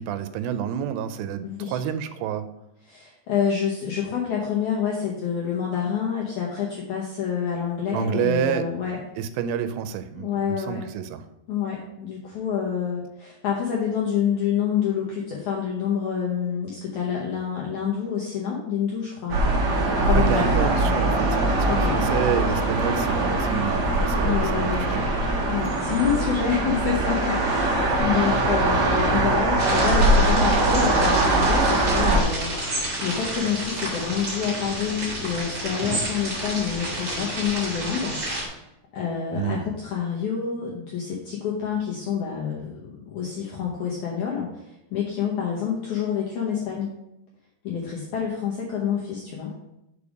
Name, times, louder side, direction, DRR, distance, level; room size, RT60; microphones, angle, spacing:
voice 1, 0.0-2.5 7.9-8.7 9.2-11.2 20.1-25.1 39.3-39.7, right 9 dB, 90° right, 11 dB, 2.8 m, -28 dB
voice 2, 1.4-1.8 2.9-9.0 10.1-10.8 11.5-19.4 20.0-20.5 21.7-22.0 24.2-24.8 25.5-38.2 38.5-38.6 38.9-46.9 47.6-49.5, left 7 dB, 80° left, -3 dB, 1.7 m, -27 dB
sound 1, 19.3-32.2, right 2 dB, 65° right, 1.7 m, -22 dB
sound 2, 29.6-38.5, right 1 dB, 35° right, 2.4 m, -30 dB
6.9 x 4.9 x 5.0 m, 0.87 s
omnidirectional pair, 4.9 m